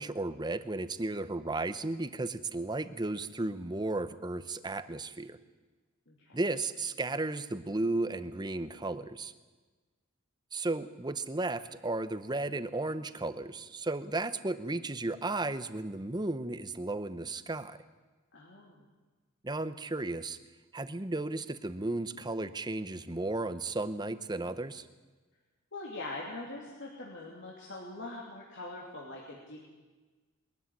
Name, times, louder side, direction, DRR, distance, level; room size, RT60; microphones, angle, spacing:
voice 1, 0.0-5.4 6.3-9.3 10.5-17.8 19.4-20.4 20.7-24.9, right 2 dB, 20° right, 12 dB, 0.8 m, -34 dB
voice 2, 6.1-6.4 18.3-18.8 25.7-29.6, left 2 dB, 60° left, -3 dB, 3.0 m, -43 dB
22.0 x 13.5 x 9.7 m, 1.3 s
head